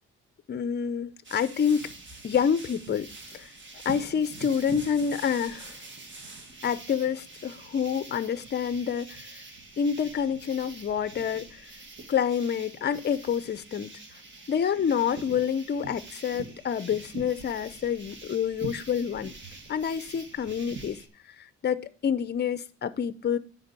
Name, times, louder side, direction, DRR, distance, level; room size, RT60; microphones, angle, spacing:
voice 1, 0.5-1.9 2.2-3.1 3.3-3.5 3.8-5.8 6.6-9.3 9.8-11.7 12.1-14.0 14.5-19.3 19.7-21.0 21.6-23.4, left 7 dB, 35° left, 0.6 m, -28 dB
sound 1, 1.2-21.1, right 3 dB, 40° right, 1.6 m, -44 dB
10.0 x 4.1 x 6.8 m
cardioid pair, 90°, 30 cm